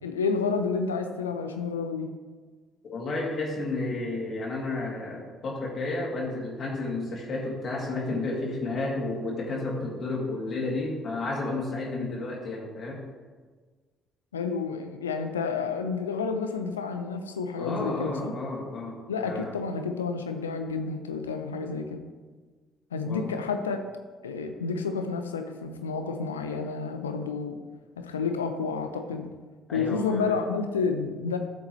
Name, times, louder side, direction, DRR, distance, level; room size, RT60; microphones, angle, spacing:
voice 1, 0.0-2.1 14.3-18.3 19.1-22.0 22.9-23.8 24.2-27.6 28.0-29.3 29.7-31.4, left 5 dB, 85° left, 7 dB, 0.6 m, -30 dB
voice 2, 2.8-13.0 17.6-19.5 23.0-23.3 29.7-30.4, left 2 dB, 50° left, -3 dB, 2.3 m, -32 dB
12.5 x 7.1 x 3.2 m, 1.4 s
figure-of-eight pair, 50°, 0 cm